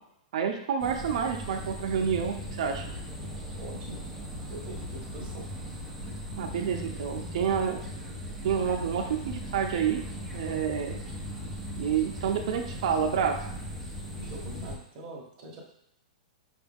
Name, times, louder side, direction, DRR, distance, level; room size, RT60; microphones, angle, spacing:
voice 1, 0.3-2.9 6.4-7.8 8.4-10.0 10.3-11.0 11.8-13.4, right 7 dB, 50° right, 3 dB, 0.6 m, -28 dB
sound 1, 0.8-14.8, equal, 5° left, 0.5 m, -38 dB
voice 2, 3.6-4.0 4.5-5.5 14.1-15.6, right 1 dB, 25° right, -2 dB, 1.0 m, -43 dB
5.7 x 2.4 x 3.5 m, 0.74 s
supercardioid pair, 175°, 4 cm